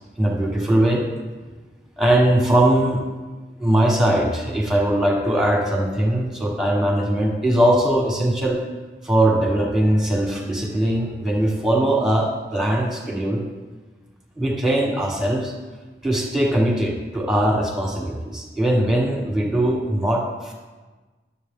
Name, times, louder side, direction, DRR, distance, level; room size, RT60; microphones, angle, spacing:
voice 1, 0.2-1.1 2.0-3.0 3.6-8.6 9.0-13.4 14.4-15.5 16.0-20.5, right 1 dB, 5° right, -1 dB, 1.4 m, -20 dB
11.5 x 7.3 x 3.7 m, 1.3 s
head